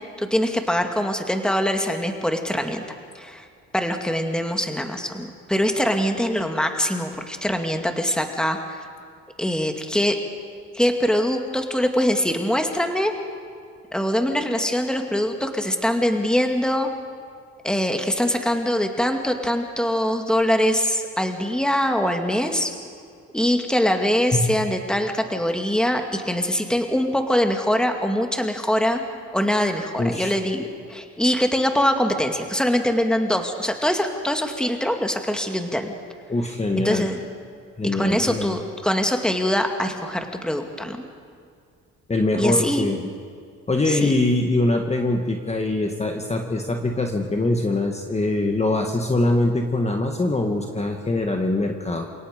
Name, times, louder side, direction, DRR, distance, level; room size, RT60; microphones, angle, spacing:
voice 1, 0.2-2.8 3.1-3.5 3.7-8.8 9.4-10.2 10.7-13.1 13.9-16.9 17.6-22.7 23.3-29.0 29.3-35.9 36.8-37.3 37.9-41.0 42.4-42.9 43.9-44.1, equal, 5° left, 4 dB, 2.2 m, -23 dB
voice 2, 30.0-30.4 36.3-37.1 37.8-38.6 42.1-43.0 43.7-52.1, left 2 dB, 20° left, 3 dB, 1.7 m, -23 dB
29.0 x 17.5 x 5.2 m, 2.3 s
cardioid pair, 90°, 30 cm